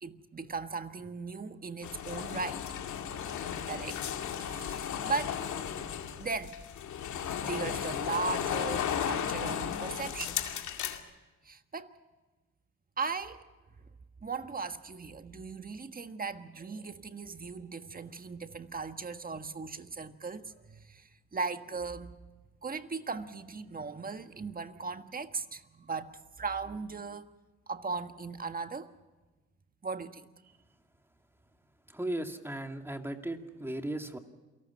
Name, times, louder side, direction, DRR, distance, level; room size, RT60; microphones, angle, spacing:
voice 1, 0.0-2.6 3.6-4.0 4.4-5.4 6.2-6.6 7.4-10.4 10.8-11.0 11.4-11.9 13.0-13.4 14.2-22.1 22.6-27.2 27.7-28.9 29.8-30.3, right 4 dB, 30° right, 8 dB, 1.5 m, -38 dB
sound 1, 1.8-11.0, left 8 dB, 75° left, 2.3 m, -35 dB
voice 2, 31.9-34.2, right 1 dB, 10° right, 5 dB, 2.2 m, -36 dB
28.5 x 18.5 x 5.7 m, 1.2 s
cardioid pair, 90°, 30 cm